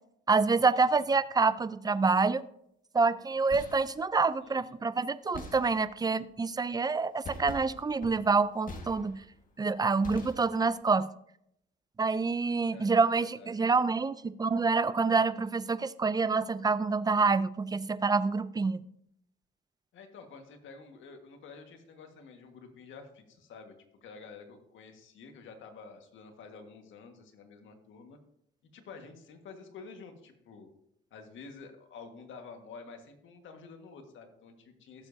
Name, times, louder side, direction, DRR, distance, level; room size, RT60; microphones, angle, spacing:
voice 1, 0.3-2.4 2.9-9.2 9.6-11.1 12.0-18.8, right 4 dB, 20° right, 15 dB, 0.5 m, -27 dB
sound 1, 3.3-4.0 5.3-6.1 7.2-9.4 10.0-10.8, left 2 dB, 45° left, 1.8 m, -44 dB
voice 2, 4.4-4.8 12.7-13.8 19.9-23.7 24.0-28.2 28.7-30.7 31.1-35.1, left 4 dB, 75° left, 5 dB, 1.6 m, -50 dB
16.0 x 7.1 x 2.7 m, 0.76 s
cardioid pair, 90°, 20 cm